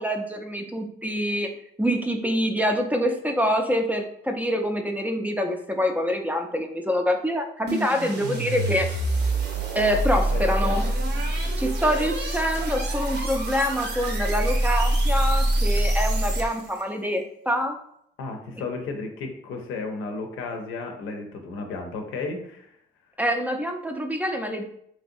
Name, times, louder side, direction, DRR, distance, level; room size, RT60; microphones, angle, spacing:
voice 1, 0.0-1.5 1.8-8.9 9.7-10.8 11.6-17.8 23.2-24.6, equal, 10° right, 4 dB, 0.4 m, -25 dB
sound 1, 7.7-16.8, right 1 dB, 55° right, 0.7 m, -25 dB
voice 2, 10.3-10.9 18.2-22.8, left 3 dB, 90° left, 4 dB, 0.6 m, -33 dB
3.1 x 2.7 x 2.5 m, 0.70 s
cardioid pair, 90°, 20 cm